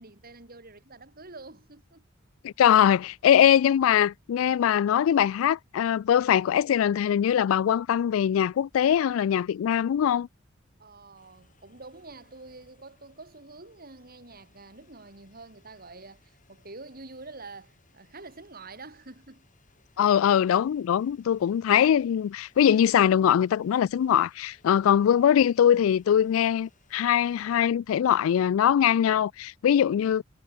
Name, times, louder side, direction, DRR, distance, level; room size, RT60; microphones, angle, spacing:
voice 1, 0.0-2.0 10.8-19.5 20.0-20.3, right 3 dB, 50° right, 4.6 m, -47 dB
voice 2, 2.4-10.3 20.0-30.2, left 9 dB, 85° left, 0.3 m, -22 dB
sound 1, 11.1-27.4, left 5 dB, 40° left, 6.2 m, -66 dB
head